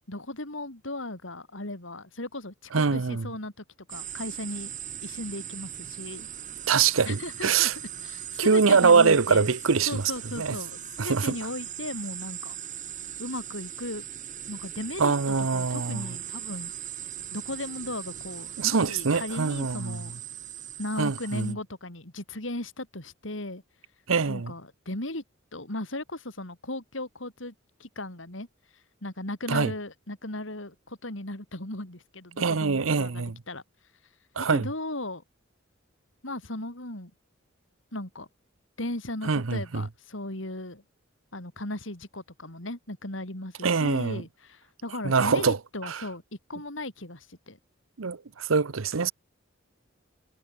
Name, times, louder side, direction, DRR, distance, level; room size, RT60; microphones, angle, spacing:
voice 1, 0.1-4.7 5.0-6.3 7.0-7.7 8.0-9.5 9.9-12.6 13.2-14.0 14.5-16.7 17.3-20.2 20.8-23.6 24.2-25.2 25.5-27.5 27.8-28.5 29.0-33.6 34.5-35.2 36.2-37.1 37.9-38.3 38.8-40.8 41.3-46.2 46.5-47.6, left 1 dB, 65° left, 4.3 m, -36 dB
voice 2, 2.7-3.3 6.7-7.7 8.4-10.0 10.4-10.6 11.0-11.3 15.0-16.1 18.6-20.0 21.0-21.5 24.1-24.5 29.5-29.7 32.4-33.3 34.4-34.7 39.2-39.8 43.6-44.2 45.0-45.6 45.9-46.0 48.0-49.1, right 5 dB, 85° right, 0.8 m, -23 dB
sound 1, 3.9-21.5, right 10 dB, 40° right, 3.7 m, -39 dB
head